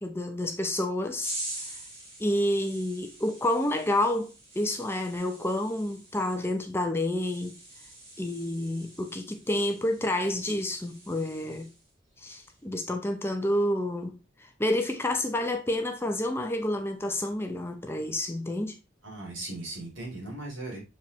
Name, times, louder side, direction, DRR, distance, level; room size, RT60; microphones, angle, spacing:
voice 1, 0.0-1.4 2.2-7.6 8.2-11.7 12.2-18.8, left 1 dB, 10° left, 0.6 m, -29 dB
sound 1, 1.2-11.9 12.2-12.6, right 1 dB, 30° right, 2.5 m, -45 dB
voice 2, 19.0-20.8, right 2 dB, 70° right, 3.1 m, -38 dB
7.0 x 4.8 x 3.1 m
head